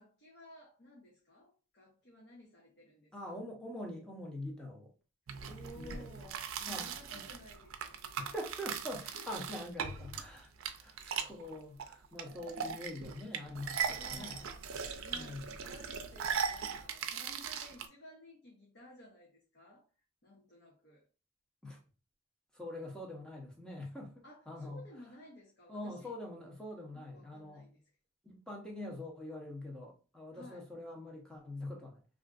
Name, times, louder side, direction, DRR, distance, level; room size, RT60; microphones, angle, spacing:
voice 1, 0.0-3.4 5.4-8.3 9.0-9.6 13.9-14.6 15.0-19.9 20.2-21.1 24.2-26.1 26.9-27.8 30.3-30.7, left 1 dB, 55° left, 0.7 m, -55 dB
voice 2, 3.1-4.9 5.8-6.1 6.6-7.2 8.2-14.4 15.1-15.4 21.6-21.8 22.5-24.8 25.7-27.7 28.2-32.0, left 1 dB, 5° left, 0.7 m, -44 dB
sound 1, 5.3-17.9, right 7 dB, 85° right, 0.4 m, -39 dB
3.6 x 2.5 x 2.4 m
head